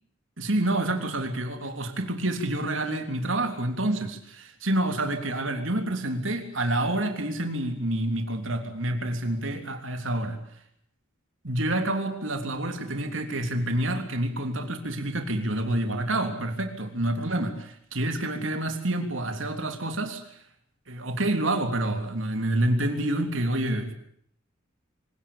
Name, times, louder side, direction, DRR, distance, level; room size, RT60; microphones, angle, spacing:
voice 1, 0.4-10.4 11.4-20.2 20.9-23.9, right 1 dB, 70° right, 5 dB, 3.5 m, -28 dB
26.0 x 18.5 x 8.8 m, 0.67 s
head